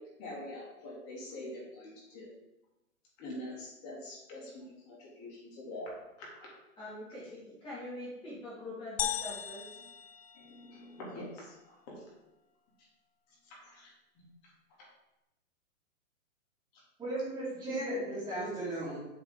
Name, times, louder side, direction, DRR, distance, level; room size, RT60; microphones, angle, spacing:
voice 1, 0.0-2.3 3.2-5.9 6.4-6.5 10.3-11.7 12.8-12.9 13.5-13.9 16.7-16.8 17.7-18.5, left 2 dB, 30° left, -4 dB, 2.5 m, -44 dB
voice 2, 6.8-9.8, left 1 dB, 10° left, -8 dB, 2.0 m, -44 dB
sound 1, 9.0-10.9, left 10 dB, 45° left, 0.5 m, -37 dB
voice 3, 17.0-19.0, right 2 dB, 10° right, -14 dB, 2.7 m, -36 dB
8.0 x 4.8 x 3.7 m, 0.93 s
hypercardioid pair, 155°, 44 cm